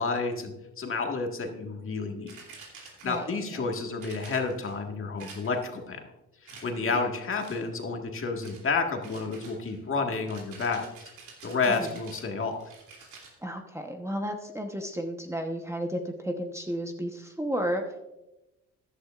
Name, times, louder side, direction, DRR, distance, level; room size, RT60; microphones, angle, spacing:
voice 1, 0.0-2.3 3.0-6.0 6.4-10.8 11.4-12.6, left 4 dB, 45° left, 3 dB, 1.7 m, -30 dB
sound 1, 2.3-3.4 4.0-4.8 5.2-5.8 6.4-7.1 7.4-7.8 8.4-8.7 9.0-13.3, right 4 dB, 85° right, 3.0 m, -49 dB
voice 2, 3.1-3.7 6.8-7.0 11.6-11.9 13.4-18.0, equal, 10° right, 4 dB, 1.0 m, -33 dB
14.0 x 11.0 x 2.5 m, 0.98 s
cardioid pair, 90°, 30 cm